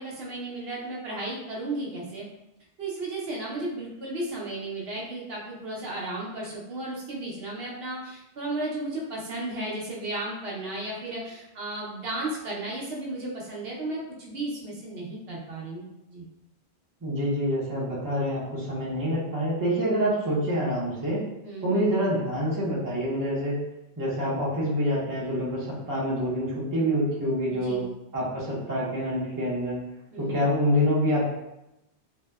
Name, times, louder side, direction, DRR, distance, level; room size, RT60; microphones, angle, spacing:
voice 1, 0.0-2.3 2.8-16.3 21.4-21.7 27.4-27.9 30.1-30.4, right 2 dB, 65° right, -4 dB, 0.8 m, -34 dB
voice 2, 17.0-21.2 21.6-23.6 24.0-27.8 28.1-29.8 30.2-31.3, equal, 25° right, -6 dB, 0.5 m, -26 dB
2.7 x 2.0 x 2.2 m, 0.90 s
omnidirectional pair, 1.1 m